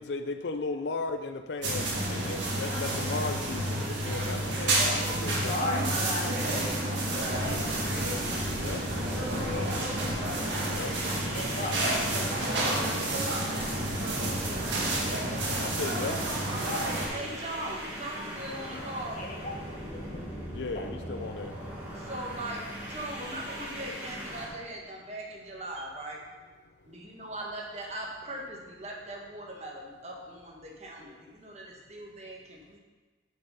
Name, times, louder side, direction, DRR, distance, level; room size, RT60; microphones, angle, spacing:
voice 1, 0.0-5.5 8.5-8.8 10.6-10.9 15.6-16.2 20.5-21.5, left 3 dB, 70° left, 8 dB, 0.5 m, -36 dB
sound 1, 1.6-17.1, right 1 dB, 75° right, 1.7 m, -30 dB
voice 2, 4.7-8.4 8.8-10.7 11.3-12.9 14.0-14.9 16.6-17.3 18.6-18.9 19.1-20.4 20.7-20.9, left 1 dB, 40° left, -3 dB, 1.1 m, -38 dB
sound 2, 7.2-24.5, equal, 10° right, 1.7 m, -40 dB
voice 3, 17.1-19.2 21.9-22.6 22.9-26.2 26.9-32.8, right 1 dB, 35° right, -1 dB, 1.3 m, -40 dB
7.7 x 5.4 x 5.6 m, 1.3 s
head